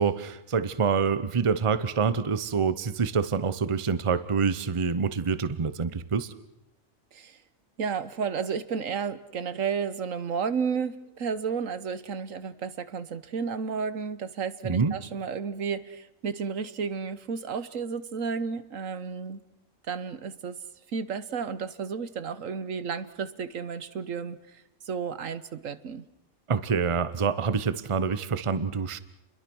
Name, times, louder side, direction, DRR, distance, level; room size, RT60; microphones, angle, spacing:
voice 1, 0.0-6.3 14.6-14.9 26.5-29.0, right 5 dB, 25° right, 14 dB, 0.8 m, -26 dB
voice 2, 7.8-19.4 19.9-20.6 20.9-24.4 24.9-26.0, right 6 dB, 75° right, 14 dB, 1.5 m, -32 dB
29.0 x 22.0 x 6.2 m, 0.84 s
omnidirectional pair, 1.4 m